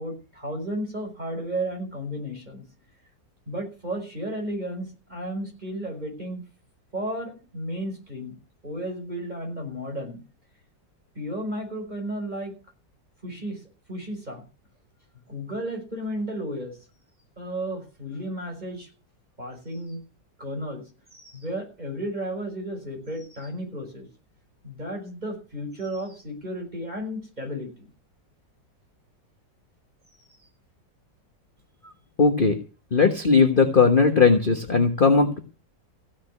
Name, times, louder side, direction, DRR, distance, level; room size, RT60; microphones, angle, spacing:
voice 1, 0.0-2.6 3.5-6.4 6.9-8.4 8.6-10.2 11.2-12.5 13.2-13.6 13.9-14.4 15.3-16.8 17.4-18.9 19.4-20.0 20.4-20.8 21.1-24.1 24.6-27.9, right 1 dB, 20° right, 2 dB, 5.7 m, -33 dB
voice 2, 32.2-32.6 32.9-35.4, left 4 dB, 30° left, 5 dB, 1.4 m, -18 dB
15.5 x 6.5 x 9.8 m, 0.34 s
omnidirectional pair, 2.0 m